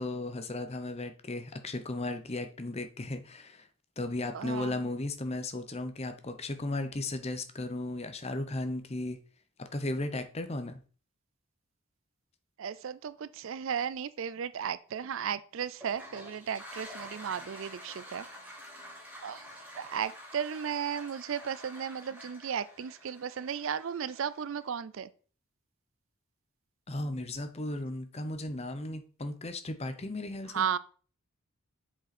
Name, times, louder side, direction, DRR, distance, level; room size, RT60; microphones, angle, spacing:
voice 1, 0.0-3.7 4.0-9.2 9.6-10.8 26.9-30.7, left 2 dB, 30° left, 0.8 m, -35 dB
voice 2, 4.3-4.8 12.6-18.3 19.2-19.4 19.8-25.1 30.5-30.8, right 8 dB, 65° right, 0.4 m, -35 dB
Toilet flush, 15.7-24.6, equal, 10° right, 2.9 m, -48 dB
7.3 x 5.3 x 4.2 m
head